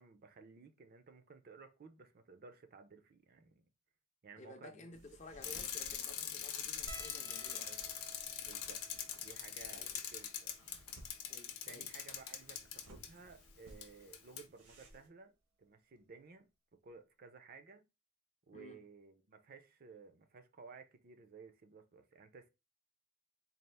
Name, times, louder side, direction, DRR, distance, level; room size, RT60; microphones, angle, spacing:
voice 1, 0.0-3.6 4.2-5.0 7.6-7.8 8.4-8.8 9.1-10.5 11.7-15.3 15.6-17.8 18.5-22.5, right 4 dB, 40° right, 0.4 m, -56 dB
voice 2, 4.4-7.7 9.7-10.0 11.3-11.9 18.5-18.8, left 2 dB, 30° left, 0.5 m, -54 dB
sound 1, 4.9-15.1, equal, 90° right, 1.1 m, -61 dB
Bicycle, 5.4-13.1 13.8-13.9 14.1-14.4, left 9 dB, 80° left, 0.7 m, -43 dB
sound 2, 6.9-11.5 12.2-12.3 12.5-12.7 14.0-14.2 15.6-15.7 16.0-16.2, right 2 dB, 70° right, 0.8 m, -57 dB
4.1 x 2.4 x 3.3 m
head